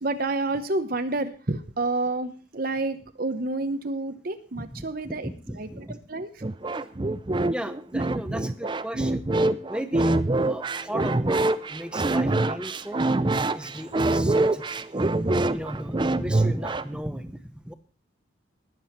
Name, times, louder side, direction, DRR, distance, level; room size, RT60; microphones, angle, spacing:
voice 1, 0.0-5.3 5.5-6.3, right 2 dB, 50° right, 8 dB, 1.0 m, -29 dB
voice 2, 4.5-6.0 7.5-9.3 9.7-11.4 11.7-13.0 13.5-14.9 15.3-17.7, equal, 5° right, 9 dB, 1.0 m, -36 dB
sound 1, 6.4-17.0, right 2 dB, 25° right, 0.5 m, -25 dB
20.5 x 7.8 x 4.5 m, 0.38 s
head